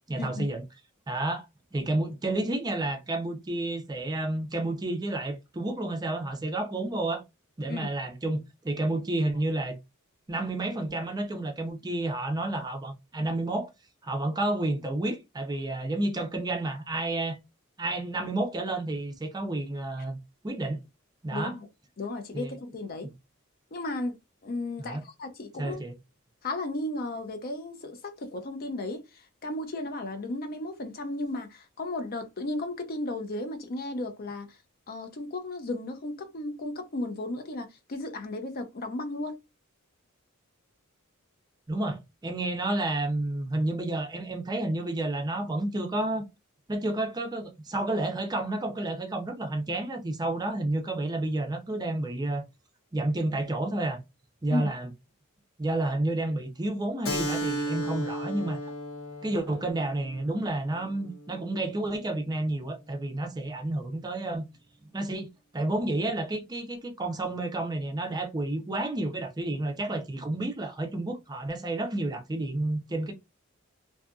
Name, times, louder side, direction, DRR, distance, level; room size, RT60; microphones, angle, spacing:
voice 1, 0.1-0.6 1.1-1.5 1.7-7.2 7.6-9.8 10.3-13.7 14.0-17.4 17.8-20.2 20.4-20.8 21.2-21.5 22.3-22.5 24.8-25.0 25.6-25.9 41.7-46.3 46.7-52.5 52.9-54.0 54.4-54.9 55.6-58.7 59.2-64.4 64.9-65.3 65.5-73.1, right 2 dB, 20° right, 0.4 m, -30 dB
voice 2, 21.3-21.7 22.0-23.1 23.7-24.2 24.4-25.8 26.4-34.6 34.9-39.4 54.5-54.7, left 2 dB, 45° left, 0.6 m, -34 dB
Keyboard (musical), 57.0-62.2, right 1 dB, 70° left, 0.8 m, -35 dB
2.6 x 2.5 x 2.3 m
head